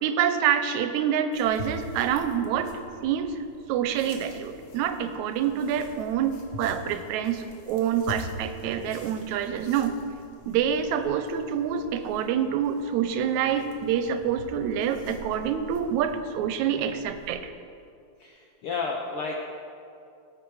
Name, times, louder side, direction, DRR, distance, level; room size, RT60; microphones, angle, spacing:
voice 1, 0.0-3.4 3.7-10.0 10.5-17.5, right 8 dB, 85° right, 9 dB, 1.9 m, -27 dB
sound 1, 1.3-17.3, left 2 dB, 55° left, 1.3 m, -45 dB
voice 2, 18.2-19.4, left 4 dB, 75° left, 1 dB, 1.3 m, -32 dB
16.5 x 6.5 x 4.8 m, 2.5 s
omnidirectional pair, 3.4 m